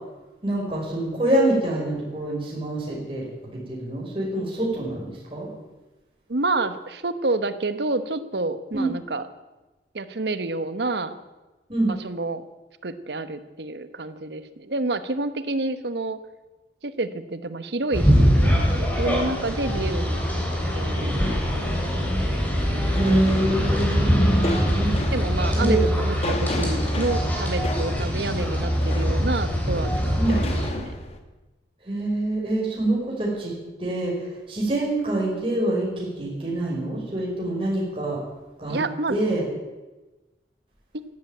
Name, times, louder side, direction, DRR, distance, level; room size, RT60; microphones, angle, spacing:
voice 1, 0.4-3.3 3.5-5.5 8.7-8.9 11.7-11.9 22.9-24.4 24.7-24.9 25.5-25.8 30.2-30.4 31.8-33.5 33.8-38.2 38.6-38.8 39.1-39.4, right 1 dB, 30° right, -4 dB, 5.1 m, -25 dB
voice 2, 6.3-9.2 9.9-11.2 11.9-12.4 12.8-16.2 16.8-20.2 20.7-21.1 21.4-21.6 25.1-30.9 38.7-39.2, right 2 dB, 75° right, 12 dB, 1.0 m, -29 dB
sound 1, 17.9-30.7, equal, 10° left, 3.7 m, -23 dB
sound 2, 22.9-31.2, left 1 dB, 35° left, 1.5 m, -35 dB
13.0 x 12.0 x 9.0 m, 1.1 s
head